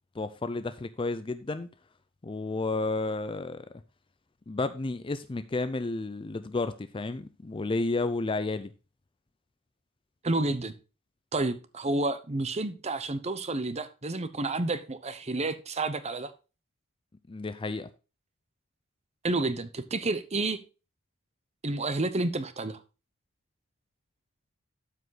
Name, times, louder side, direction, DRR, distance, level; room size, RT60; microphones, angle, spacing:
voice 1, 0.2-1.7 2.2-3.7 4.5-8.7 17.3-17.9, left 3 dB, 25° left, 0.4 m, -31 dB
voice 2, 10.2-10.7 11.3-16.3 19.2-20.6 21.6-22.8, right 2 dB, 30° right, 0.8 m, -30 dB
12.5 x 5.0 x 4.0 m
head